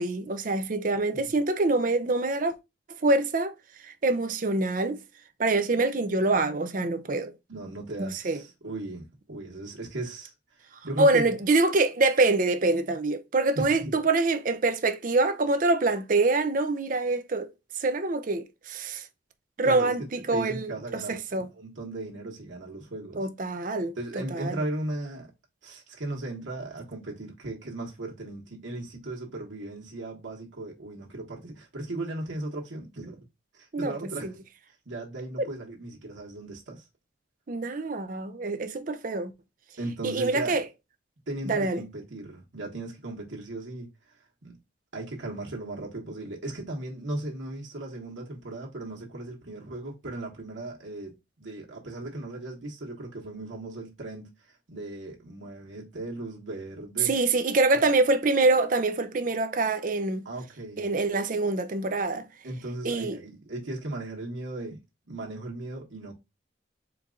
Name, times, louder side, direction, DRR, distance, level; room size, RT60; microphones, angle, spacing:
voice 1, 0.0-2.5 3.0-3.5 3.8-5.0 5.4-7.3 8.0-8.4 11.0-17.5 17.8-19.1 19.6-21.5 23.2-23.9 24.3-24.6 33.7-33.9 34.2-34.3 35.4-35.5 37.5-39.3 40.0-40.6 41.5-41.8 57.0-60.2 60.8-62.3 62.8-63.2, right 2 dB, 45° right, 0.5 m, -25 dB
voice 2, 7.5-11.4 13.5-13.9 19.6-23.3 24.0-25.3 25.6-33.2 33.5-34.4 34.8-36.9 39.8-40.6 41.3-43.9 44.4-44.6 44.9-57.1 57.7-57.9 60.2-60.8 62.4-64.8 65.1-66.1, right 2 dB, 90° right, 1.3 m, -37 dB
4.5 x 2.5 x 3.7 m
head